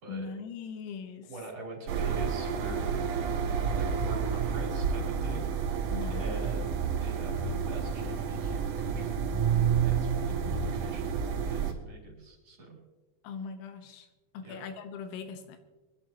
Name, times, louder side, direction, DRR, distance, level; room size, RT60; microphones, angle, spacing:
voice 1, 0.1-1.3 5.9-6.2 13.2-14.1 14.3-15.6, left 5 dB, 85° left, 7 dB, 3.5 m, -40 dB
voice 2, 1.2-2.9 3.8-5.5 6.1-9.2 9.8-11.2 11.5-12.8 14.4-14.6, right 2 dB, 35° right, -2 dB, 4.0 m, -44 dB
sound 1, 1.9-11.7, right 6 dB, 80° right, 1.8 m, -30 dB
24.0 x 12.0 x 2.9 m, 1.2 s
omnidirectional pair, 5.4 m